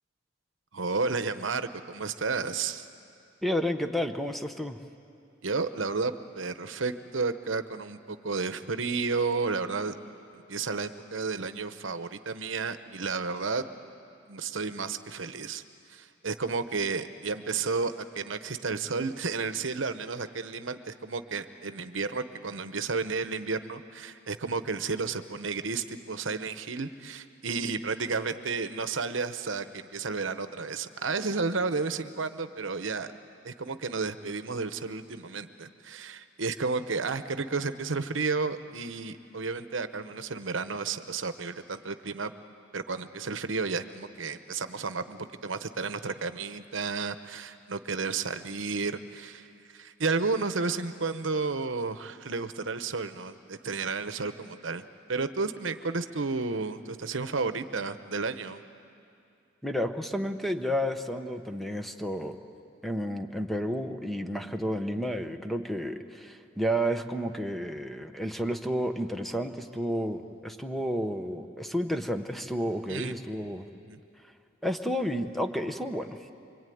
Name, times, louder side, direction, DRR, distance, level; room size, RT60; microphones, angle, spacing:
voice 1, 0.7-2.9 5.4-9.9 10.5-13.7 14.3-15.6 15.9-33.1 33.4-42.3 42.7-54.8 55.1-58.6 72.9-73.1 73.8-74.0, right 4 dB, 70° right, 10 dB, 1.0 m, -32 dB
voice 2, 3.4-4.8 59.6-62.4 62.8-73.7 74.6-76.2, equal, ahead, 7 dB, 1.0 m, -31 dB
25.0 x 24.0 x 9.4 m, 2.5 s
head